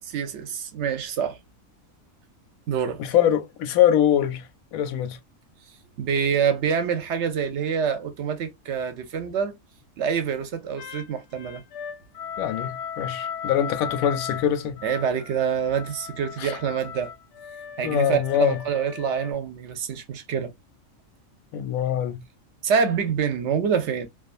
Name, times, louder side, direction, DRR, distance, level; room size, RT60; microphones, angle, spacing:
voice 1, 0.0-1.4 2.7-3.0 6.0-9.6 10.0-11.6 14.8-17.1 17.8-20.5 22.6-24.1, right 7 dB, 65° right, 0.8 m, -26 dB
voice 2, 3.0-5.2 12.4-14.8 16.4-16.6 17.8-18.6 21.5-22.2, left 10 dB, 90° left, 1.0 m, -23 dB
sound 1, 10.8-19.3, left 8 dB, 65° left, 0.7 m, -37 dB
2.5 x 2.4 x 2.4 m
omnidirectional pair, 1.4 m